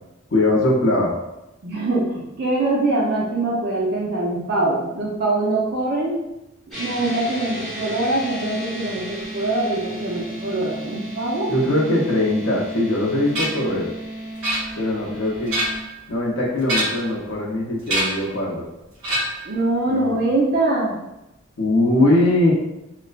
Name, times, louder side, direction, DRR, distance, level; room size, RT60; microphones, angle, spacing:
voice 1, 0.3-1.1 11.5-13.9 14.8-15.5 16.1-18.6 19.9-20.2 21.6-22.5, left 1 dB, 60° left, -4 dB, 0.6 m, -21 dB
voice 2, 1.6-6.2 6.7-11.5 19.4-21.0 21.9-22.1, right 2 dB, 50° right, -4 dB, 0.5 m, -23 dB
sound 1, 6.7-15.8, right 1 dB, ahead, 1.0 m, -33 dB
sound 2, 13.3-13.7 14.4-15.0 15.4-15.9 16.6-17.2 17.9-18.3 19.0-19.5, right 1 dB, 70° right, 1.4 m, -25 dB
3.1 x 2.1 x 2.4 m, 0.92 s
head